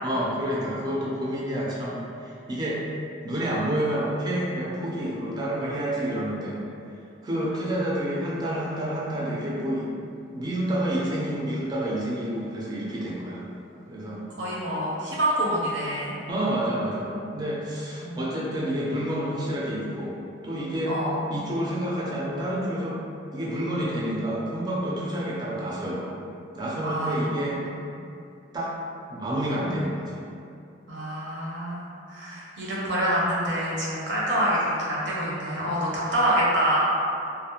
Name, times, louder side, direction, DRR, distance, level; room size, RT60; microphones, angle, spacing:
voice 1, 0.0-2.8 3.2-6.6 7.2-9.9 10.3-13.5 13.9-14.2 16.3-20.1 20.4-21.0 21.3-23.0 23.3-26.2 26.5-27.6 28.5-28.7 29.1-30.2, right 1 dB, 20° right, -5 dB, 0.3 m, -29 dB
voice 2, 14.4-16.2 18.0-18.2 20.9-21.2 26.8-27.8 30.9-36.8, right 1 dB, 65° right, -6 dB, 0.6 m, -26 dB
2.4 x 2.0 x 2.8 m, 2.5 s
head